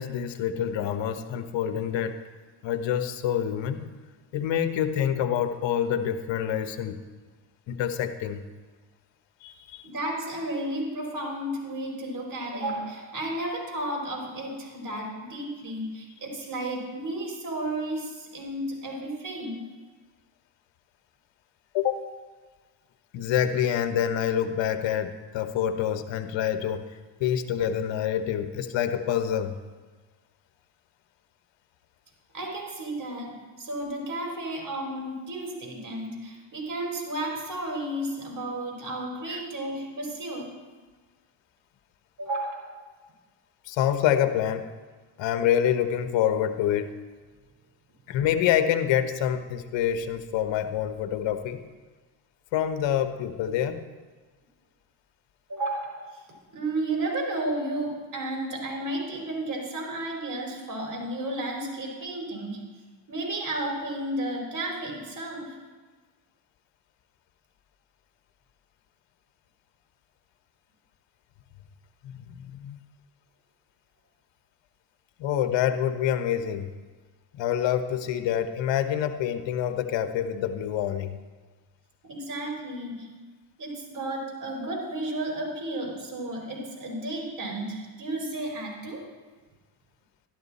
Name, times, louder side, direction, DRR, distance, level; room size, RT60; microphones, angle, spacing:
voice 1, 0.0-2.2 2.6-3.8 4.3-7.0 7.7-8.4 9.4-9.8 21.7-22.1 23.1-26.9 27.2-29.6 39.3-39.4 43.7-44.7 45.2-46.9 48.1-51.6 52.5-53.8 72.0-72.8 75.2-76.7 77.3-81.2, left 9 dB, 65° left, 9 dB, 1.1 m, -26 dB
voice 2, 9.8-19.6 32.3-40.5 42.2-42.8 55.5-56.2 56.5-62.6 63.1-65.6 82.0-83.1 83.6-89.0, right 1 dB, 40° right, 0 dB, 4.5 m, -33 dB
12.5 x 12.0 x 4.2 m, 1.4 s
supercardioid pair, 75°, 47 cm